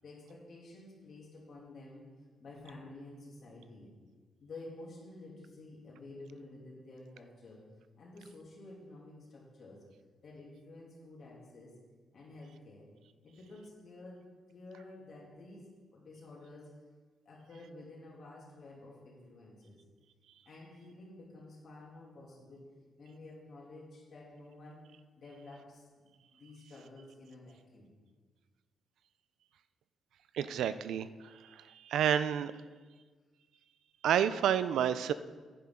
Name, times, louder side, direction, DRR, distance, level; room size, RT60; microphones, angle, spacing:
voice 1, 0.0-2.1 2.4-3.9 4.4-7.7 8.0-9.8 10.2-11.8 12.1-12.9 13.2-16.7 17.2-19.8 20.5-22.7 23.0-24.8 25.2-27.9, left 2 dB, 50° left, -3 dB, 2.6 m, -51 dB
voice 2, 30.3-31.1 31.5-32.5 34.0-35.1, right 9 dB, 85° right, 13 dB, 0.4 m, -29 dB
10.0 x 10.0 x 3.7 m, 1.4 s
cardioid pair, 140°, 0 cm